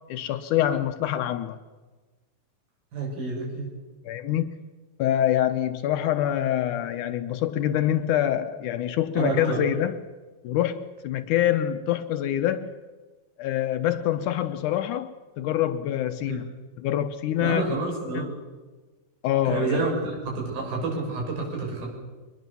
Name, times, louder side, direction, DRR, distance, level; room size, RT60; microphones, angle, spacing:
voice 1, 0.1-1.6 4.1-4.5 5.0-9.9 10.4-12.8 13.4-16.4 16.8-17.8 18.1-18.3 19.2-19.8, left 11 dB, 75° left, 2.1 m, -25 dB
voice 2, 2.9-3.7 9.1-9.6 16.3-16.5 17.4-18.3 19.5-21.9, right 3 dB, 85° right, 7.5 m, -29 dB
24.0 x 20.0 x 7.0 m
omnidirectional pair, 4.1 m